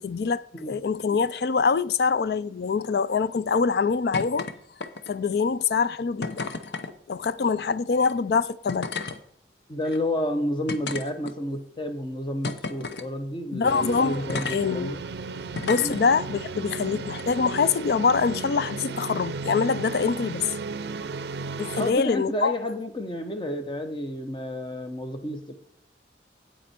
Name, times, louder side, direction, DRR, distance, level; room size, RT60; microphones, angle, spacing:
voice 1, 0.0-4.5 5.1-6.4 7.1-8.9 13.5-14.2 14.5-14.9 15.6-20.5 21.6-22.5, left 5 dB, 60° left, 0.4 m, -24 dB
sound 1, 4.1-4.5 4.8-5.2 6.2-6.9 8.0-8.1 8.7-9.2 9.8-10.0 10.7-11.6 12.4-13.1 14.3-14.6 15.5-16.0 17.1-17.2, left 4 dB, 75° left, 0.8 m, -32 dB
voice 2, 9.7-15.0 15.8-16.0 21.8-25.5, left 1 dB, 25° left, 1.0 m, -30 dB
sound 2, 13.6-21.9, right 4 dB, 70° right, 0.5 m, -35 dB
8.7 x 8.4 x 4.4 m
head